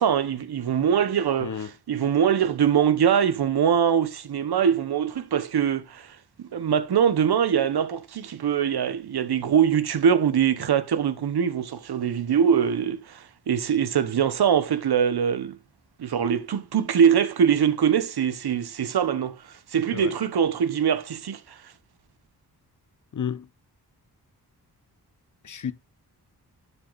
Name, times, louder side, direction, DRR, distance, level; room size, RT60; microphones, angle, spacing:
voice 1, 0.0-1.5 1.9-6.1 6.5-15.6 16.0-19.4 19.7-21.6, right 8 dB, 70° right, 1.0 m, -23 dB
voice 2, 1.4-1.7 19.9-20.1 23.1-23.5 25.4-25.7, left 8 dB, 50° left, 0.8 m, -31 dB
11.0 x 8.0 x 2.5 m
cardioid pair, 70°, 39 cm